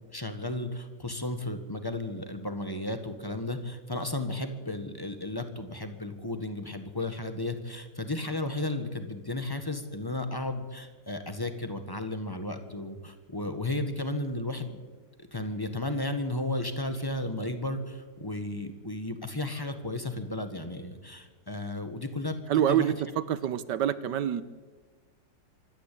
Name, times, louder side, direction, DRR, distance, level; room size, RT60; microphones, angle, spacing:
voice 1, 0.1-14.8 15.3-22.9, left 2 dB, 15° left, 8 dB, 1.3 m, -34 dB
voice 2, 22.5-24.4, right 10 dB, 70° right, 15 dB, 1.4 m, -26 dB
25.5 x 12.0 x 8.5 m, 1.4 s
omnidirectional pair, 2.0 m